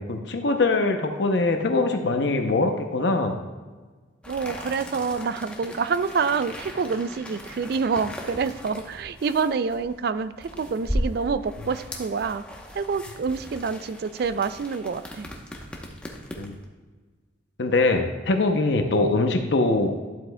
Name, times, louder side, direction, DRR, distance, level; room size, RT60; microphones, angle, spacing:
voice 1, 0.0-3.4 16.4-16.5 17.6-19.9, left 3 dB, 65° left, 5 dB, 0.7 m, -22 dB
sound 1, 4.2-16.6, equal, 5° left, 0.8 m, -37 dB
voice 2, 4.3-12.4 12.7-15.3, right 5 dB, 55° right, 13 dB, 0.3 m, -27 dB
11.5 x 7.8 x 2.2 m, 1.4 s
head